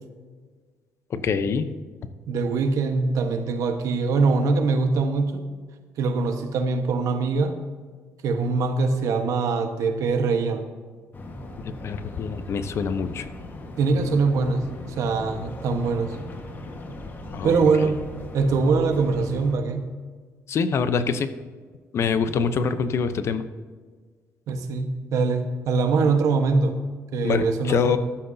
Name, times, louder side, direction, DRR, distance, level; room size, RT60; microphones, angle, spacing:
voice 1, 1.1-1.7 11.8-13.3 17.3-17.9 20.5-21.3 21.9-23.4 27.2-28.0, left 6 dB, 50° left, 11 dB, 0.7 m, -25 dB
voice 2, 2.3-5.4 6.0-7.6 8.2-10.7 13.8-14.6 15.0-16.2 17.4-18.0 18.3-19.9 24.5-26.8 27.1-28.0, right 4 dB, 75° right, 6 dB, 1.2 m, -23 dB
sound 1, 11.1-19.5, left 2 dB, 35° left, 1.4 m, -38 dB
14.5 x 11.5 x 2.7 m, 1.5 s
cardioid pair, 120°, 6 cm